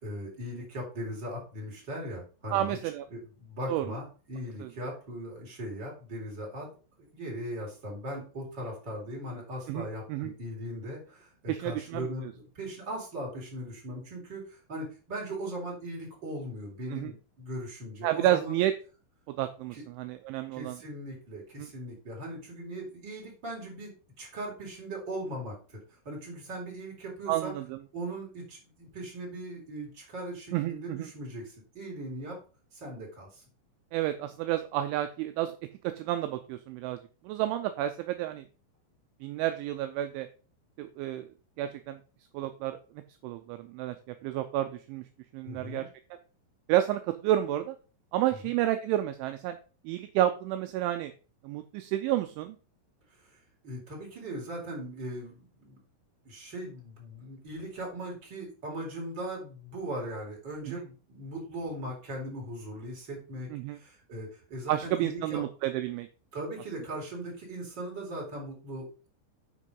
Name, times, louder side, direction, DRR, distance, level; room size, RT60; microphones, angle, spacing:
voice 1, 0.0-2.8 3.1-6.7 7.0-18.5 19.7-19.8 20.5-23.9 24.2-25.8 26.0-27.5 27.9-32.4 32.7-33.4 45.4-45.9 48.3-48.4 53.2-53.4 53.6-55.8 56.2-63.5 63.7-65.4 66.3-69.1, right 1 dB, 25° right, -2 dB, 3.8 m, -39 dB
voice 2, 2.5-3.1 3.7-3.9 4.6-4.7 9.7-10.3 11.5-12.1 16.9-17.1 18.0-18.7 19.3-20.8 21.6-21.7 27.3-27.8 30.5-31.1 33.9-35.5 35.8-37.0 37.2-38.4 39.2-40.3 40.8-41.3 41.6-42.0 42.3-42.8 43.2-44.0 44.2-45.0 45.3-45.9 46.7-47.8 48.1-49.6 49.8-51.1 51.4-52.6 60.6-60.8 63.5-63.8 64.7-66.1, right 13 dB, 85° right, 8 dB, 2.8 m, -30 dB
8.4 x 6.1 x 5.3 m, 0.36 s
omnidirectional pair, 6.0 m